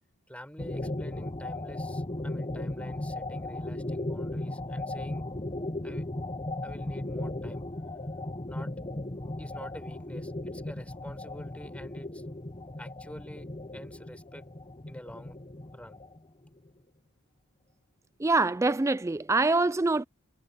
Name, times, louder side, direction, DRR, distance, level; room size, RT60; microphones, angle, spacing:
voice 1, 0.3-5.2 5.8-6.1 6.6-7.6 8.5-8.7 9.4-12.2 12.8-13.5 13.7-14.4 14.9-15.4 15.7-16.0, equal, 5° left, 5.6 m, -47 dB
sound 1, 0.6-16.7, left 1 dB, 25° left, 0.9 m, -36 dB
voice 2, 18.2-20.0, right 3 dB, 15° right, 0.3 m, -25 dB
head